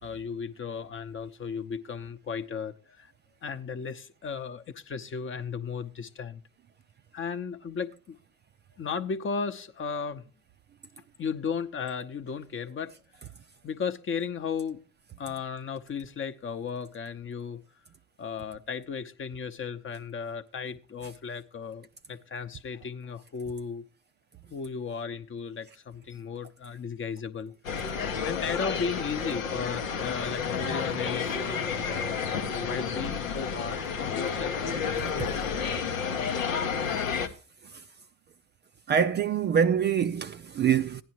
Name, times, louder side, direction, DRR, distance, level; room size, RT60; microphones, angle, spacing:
voice 1, 0.0-3.1 3.4-6.4 7.1-8.2 8.8-10.3 11.2-12.9 13.6-14.8 15.2-17.6 18.2-23.8 24.5-27.5 28.2-32.2 32.5-34.6, left 6 dB, 30° left, 0.8 m, -35 dB
sound 1, 27.6-37.3, left 6 dB, 85° left, 0.9 m, -31 dB
voice 2, 35.0-35.4 37.6-37.8 38.9-41.0, right 8 dB, 30° right, 0.4 m, -25 dB
15.5 x 10.0 x 2.9 m
figure-of-eight pair, 60°, 39 cm